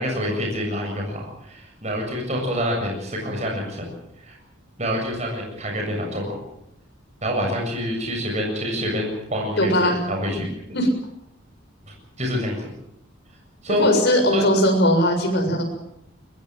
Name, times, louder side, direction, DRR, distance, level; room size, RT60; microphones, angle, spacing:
voice 1, 0.0-3.9 4.2-4.4 4.8-6.4 7.2-10.5 12.2-12.7 13.6-13.9 14.3-14.4, equal, 35° right, 0 dB, 7.5 m, -27 dB
voice 2, 9.6-10.0 10.7-10.9 13.7-15.6, equal, 55° left, 3 dB, 7.4 m, -19 dB
23.5 x 21.0 x 7.7 m, 0.79 s
head